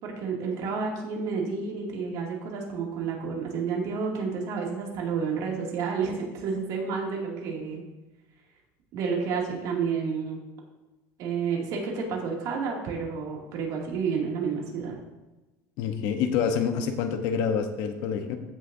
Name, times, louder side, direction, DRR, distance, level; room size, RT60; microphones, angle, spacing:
voice 1, 0.0-7.8 8.9-10.5 11.2-15.0, right 5 dB, 55° right, -2 dB, 2.5 m, -30 dB
voice 2, 15.8-18.4, left 7 dB, 65° left, 6 dB, 1.0 m, -27 dB
15.0 x 6.4 x 2.7 m, 1.1 s
cardioid pair, 150°, 8 cm